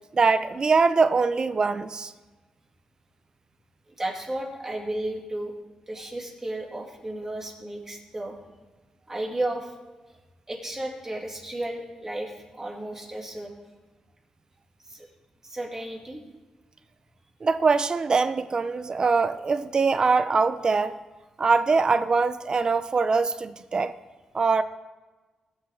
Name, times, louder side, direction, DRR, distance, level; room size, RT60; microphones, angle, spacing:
voice 1, 0.1-2.1 17.4-21.0 21.4-24.0 24.3-24.6, right 4 dB, 35° right, 12 dB, 0.5 m, -23 dB
voice 2, 3.9-5.5 5.9-8.4 9.1-9.7 10.5-13.5 14.9-15.1 15.4-16.2, right 1 dB, 20° right, 0 dB, 2.4 m, -33 dB
17.5 x 7.2 x 3.6 m, 1.2 s
cardioid pair, 90°, 2 cm